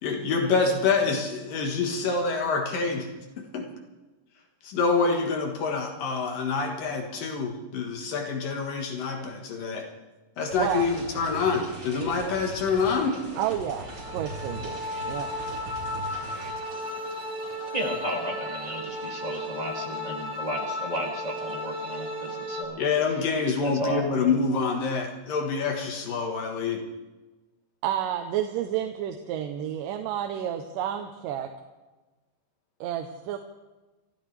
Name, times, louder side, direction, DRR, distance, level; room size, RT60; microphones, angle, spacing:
voice 1, 0.0-3.1 3.4-3.7 4.6-9.8 10.4-13.2 22.8-26.8, left 4 dB, 75° left, 2 dB, 3.1 m, -26 dB
sound 1, 10.5-16.5, right 2 dB, 30° right, 5.2 m, -40 dB
voice 2, 13.4-14.8 15.1-15.3 27.8-31.5 32.8-33.4, right 10 dB, 80° right, 5 dB, 2.4 m, -30 dB
sound 2, 13.7-22.6, left 1 dB, 55° right, 3.5 m, -34 dB
voice 3, 17.7-22.8 23.6-24.3, equal, 15° right, -1 dB, 2.1 m, -33 dB
28.0 x 14.0 x 3.4 m, 1.2 s
omnidirectional pair, 4.0 m